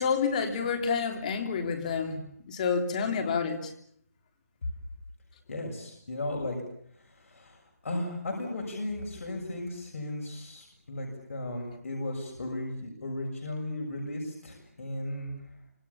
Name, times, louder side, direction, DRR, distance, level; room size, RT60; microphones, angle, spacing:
voice 1, 0.0-3.7, left 5 dB, 30° left, 5 dB, 3.2 m, -29 dB
voice 2, 5.5-6.6 6.9-15.4, left 1 dB, 60° left, 0 dB, 7.1 m, -36 dB
27.0 x 26.0 x 7.2 m, 0.69 s
hypercardioid pair, 170°, 9 cm